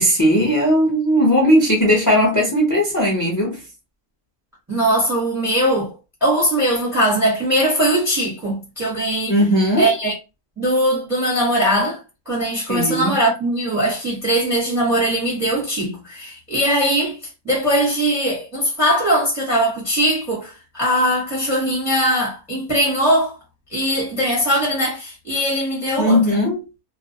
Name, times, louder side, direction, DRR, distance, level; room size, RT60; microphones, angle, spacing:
voice 1, 0.0-3.6 9.3-9.9 12.7-13.1 26.0-26.6, equal, 25° left, 0.4 m, -17 dB
voice 2, 4.7-5.9 6.2-9.3 9.8-10.1 10.6-12.0 12.3-17.2 17.4-23.3 23.7-26.2, right 1 dB, ahead, 0.8 m, -20 dB
2.4 x 2.0 x 2.7 m
omnidirectional pair, 1.6 m